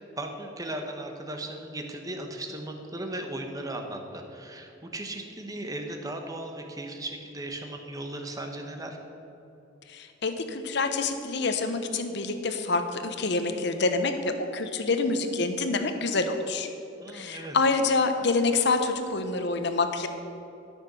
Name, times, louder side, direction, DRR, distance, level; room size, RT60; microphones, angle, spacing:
voice 1, 0.1-9.0 17.0-17.6, right 1 dB, 20° right, 4 dB, 1.1 m, -37 dB
voice 2, 9.9-16.7 17.1-20.1, left 3 dB, 60° left, 7 dB, 1.0 m, -27 dB
13.5 x 6.5 x 6.8 m, 3.0 s
head